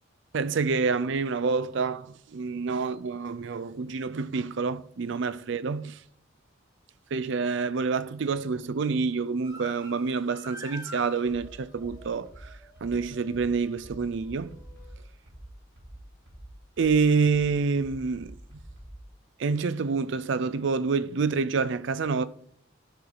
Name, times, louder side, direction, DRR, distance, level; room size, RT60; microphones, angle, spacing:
voice 1, 0.3-6.0 7.1-12.3 12.8-14.6 16.8-18.4 19.4-22.3, right 4 dB, 60° right, 0.4 m, -27 dB
sound 1, 9.4-15.0, equal, 20° right, 1.9 m, -48 dB
sound 2, 11.3-19.1, right 1 dB, 90° right, 3.6 m, -47 dB
12.5 x 4.8 x 4.1 m
head